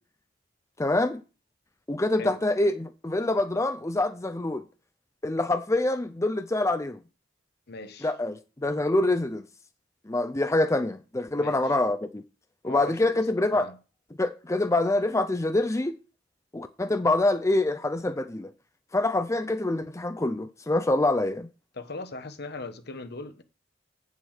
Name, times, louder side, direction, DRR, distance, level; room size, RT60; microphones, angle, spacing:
voice 1, 0.8-1.2 1.9-4.6 5.2-7.0 8.0-9.4 10.1-12.2 12.6-13.7 14.2-16.0 16.5-18.5 18.9-21.5, left 2 dB, 15° left, 0.6 m, -25 dB
voice 2, 7.7-8.1 11.3-11.8 12.6-13.2 13.5-13.8 21.7-23.4, left 3 dB, 60° left, 1.2 m, -39 dB
8.4 x 7.1 x 6.5 m
head